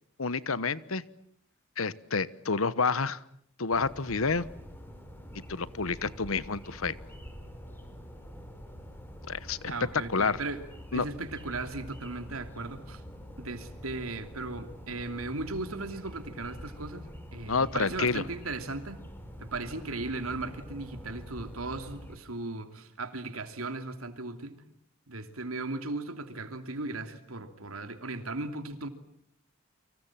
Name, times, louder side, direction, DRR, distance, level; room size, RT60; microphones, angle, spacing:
voice 1, 0.2-1.0 1.8-3.2 3.6-4.5 5.5-7.0 9.3-9.6 10.1-10.4 10.9-11.0 17.5-18.2, left 4 dB, 75° left, 17 dB, 1.2 m, -29 dB
sound 1, 3.7-22.2, equal, 10° left, 4.6 m, -46 dB
voice 2, 9.7-10.6 10.9-13.0 13.4-19.0 19.4-24.6 25.1-28.9, right 2 dB, 85° right, 8 dB, 3.0 m, -37 dB
30.0 x 25.0 x 7.5 m, 0.68 s
head